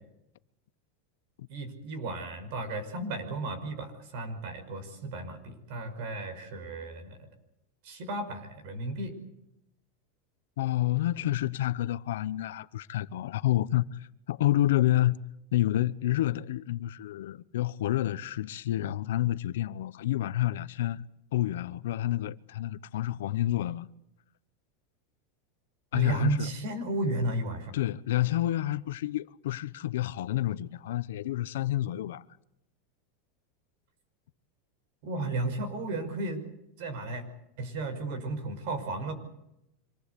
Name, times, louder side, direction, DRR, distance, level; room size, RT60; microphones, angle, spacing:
voice 1, 1.5-7.2 7.8-9.2 25.9-27.7 35.0-36.4 36.8-37.2 37.6-39.1, right 2 dB, 50° right, 5.6 m, -34 dB
voice 2, 10.6-15.2 15.5-21.0 21.3-23.9 25.9-26.5 27.7-32.2, left 14 dB, 85° left, 0.9 m, -29 dB
26.0 x 19.0 x 8.3 m
supercardioid pair, 170°, 0 cm